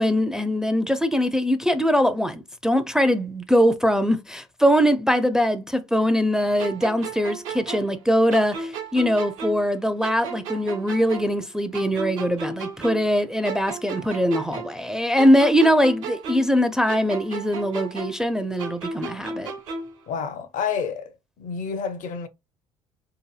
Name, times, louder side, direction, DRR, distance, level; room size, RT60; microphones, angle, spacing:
voice 1, 0.0-19.5, equal, 5° right, 0.4 m, -22 dB
sound 1, 6.6-9.7 10.0-13.2 13.4-16.6 16.9-20.0, right 4 dB, 85° right, 0.8 m, -34 dB
voice 2, 20.1-21.1 21.4-22.3, left 6 dB, 55° left, 0.6 m, -29 dB
2.8 x 2.5 x 2.3 m
hypercardioid pair, 60°, 16 cm